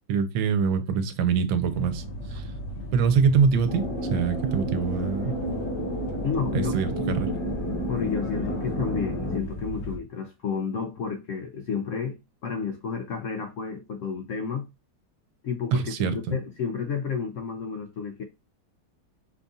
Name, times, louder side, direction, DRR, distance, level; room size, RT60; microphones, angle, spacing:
voice 1, 0.1-2.0 2.3-2.4 2.9-5.4 6.5-7.4 15.7-16.4, right 6 dB, 90° right, 1.5 m, -24 dB
sound 1, 1.6-10.0, equal, 55° left, 1.0 m, -36 dB
sound 2, 3.7-9.4, equal, 20° left, 0.8 m, -31 dB
voice 2, 6.2-6.8 7.9-14.7 15.4-18.2, left 6 dB, 85° left, 0.6 m, -31 dB
5.3 x 2.4 x 3.9 m
omnidirectional pair, 2.1 m